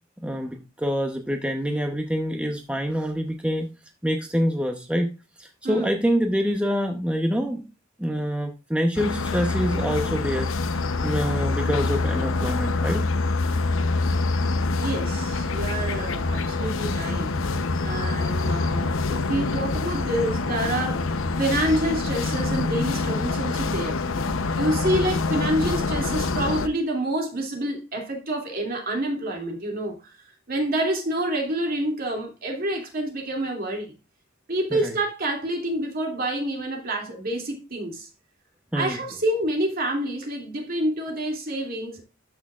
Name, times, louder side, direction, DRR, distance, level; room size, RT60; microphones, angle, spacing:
voice 1, 0.2-3.7 4.0-5.1 5.4-7.6 8.0-10.5 11.0-13.1 34.7-34.9 38.7-39.0, equal, 5° right, 0.8 m, -26 dB
sound 1, 9.0-26.7, left 3 dB, 85° left, 0.8 m, -25 dB
voice 2, 14.7-17.3 17.8-24.0 24.5-30.2 30.5-34.0 34.5-38.1 38.7-42.0, right 1 dB, 50° right, 2.7 m, -28 dB
13.0 x 6.3 x 2.4 m
head